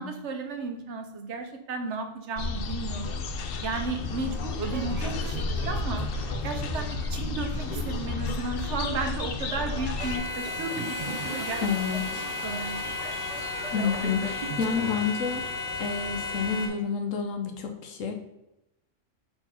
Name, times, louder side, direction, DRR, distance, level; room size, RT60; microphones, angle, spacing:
voice 1, 0.0-3.2 3.6-6.0 6.4-11.6 12.2-12.9, right 3 dB, 65° right, 5 dB, 1.2 m, -34 dB
sound 1, 2.4-10.2, left 4 dB, 60° left, 0.7 m, -32 dB
sound 2, 4.6-15.0, right 4 dB, 45° right, 0.5 m, -39 dB
sound 3, 10.0-16.7, left 3 dB, 15° left, 1.8 m, -33 dB
voice 2, 11.6-12.3 13.7-15.4 15.8-18.1, left 6 dB, 80° left, 4 dB, 1.2 m, -29 dB
4.5 x 4.4 x 5.5 m, 0.89 s
omnidirectional pair, 1.3 m